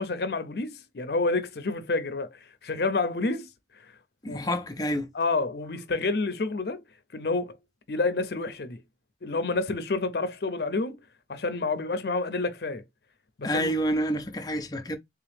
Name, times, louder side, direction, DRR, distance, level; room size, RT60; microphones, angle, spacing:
voice 1, 0.0-3.5 4.2-4.5 5.1-6.8 7.1-7.6 7.9-8.8 9.2-11.0 11.3-12.8 13.4-13.7, left 3 dB, 65° left, 0.6 m, -29 dB
voice 2, 4.2-5.1 13.4-15.0, equal, 20° left, 0.5 m, -28 dB
3.4 x 2.9 x 3.3 m
head